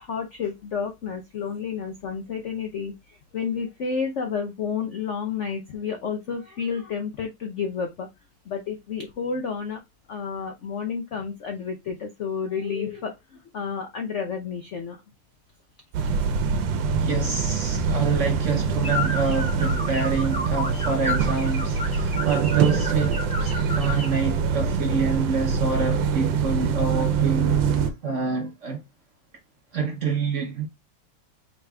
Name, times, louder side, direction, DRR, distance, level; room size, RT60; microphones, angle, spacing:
voice 1, 0.0-8.1 8.5-9.8 10.1-15.0, left 6 dB, 70° left, 0.7 m, -31 dB
sound 1, 15.9-27.9, right 6 dB, 80° right, 1.4 m, -24 dB
voice 2, 17.0-28.8 29.7-30.7, right 5 dB, 60° right, 0.8 m, -27 dB
sound 2, 18.8-24.2, left 2 dB, 10° left, 0.3 m, -32 dB
4.9 x 4.0 x 2.3 m
omnidirectional pair, 2.0 m